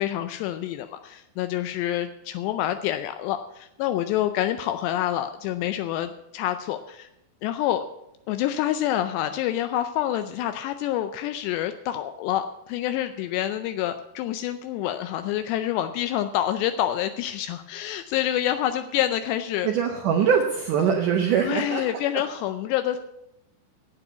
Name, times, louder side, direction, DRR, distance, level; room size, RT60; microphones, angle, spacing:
voice 1, 0.0-7.1 7.4-7.8 8.3-19.7 21.4-23.0, left 12 dB, 85° left, 9 dB, 2.7 m, -27 dB
voice 2, 19.6-21.8, right 7 dB, 80° right, 3 dB, 1.8 m, -22 dB
9.6 x 8.6 x 8.1 m, 0.84 s
omnidirectional pair, 5.0 m